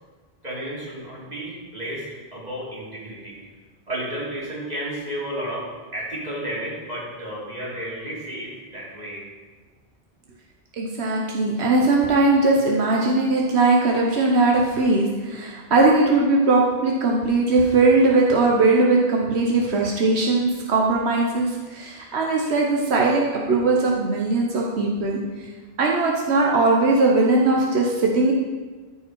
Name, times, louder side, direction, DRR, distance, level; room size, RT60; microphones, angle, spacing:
voice 1, 0.4-2.0 2.3-3.4 3.9-5.7 5.9-9.2, right 1 dB, 40° right, -7 dB, 3.1 m, -32 dB
voice 2, 10.8-25.5 25.8-28.3, right 3 dB, 90° right, -1 dB, 1.3 m, -20 dB
13.5 x 5.4 x 4.6 m, 1.4 s
omnidirectional pair, 1.1 m